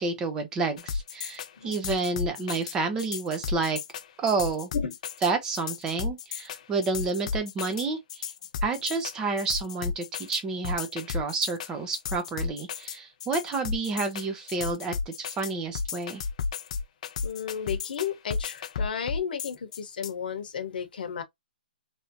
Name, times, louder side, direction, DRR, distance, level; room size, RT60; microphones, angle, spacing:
voice 1, 0.0-3.8 4.2-4.7 5.2-8.3 8.6-16.2, right 4 dB, 10° right, 0.7 m, -30 dB
sound 1, 0.8-20.1, left 5 dB, 40° left, 0.4 m, -33 dB
voice 2, 17.2-21.2, left 7 dB, 60° left, 1.0 m, -33 dB
3.3 x 2.7 x 2.6 m
hypercardioid pair, 165°, 5 cm